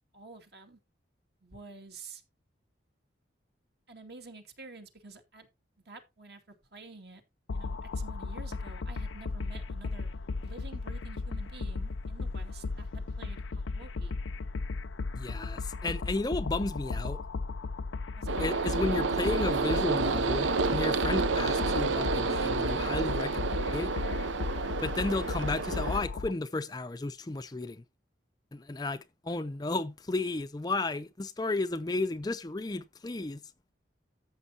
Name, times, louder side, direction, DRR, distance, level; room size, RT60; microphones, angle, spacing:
voice 1, 0.1-0.8 1.4-2.2 3.9-5.5 5.8-6.4 6.7-7.2 7.5-10.1 10.4-14.2 18.1-18.4, right 3 dB, 55° right, 2.3 m, -49 dB
sound 1, 7.5-26.3, left 3 dB, 90° left, 0.6 m, -36 dB
voice 2, 15.1-17.2 18.4-23.9 24.8-27.8 28.5-33.4, left 2 dB, 20° left, 0.4 m, -33 dB
sound 2, 18.3-26.0, right 4 dB, 85° right, 0.8 m, -30 dB
14.0 x 7.1 x 2.9 m
head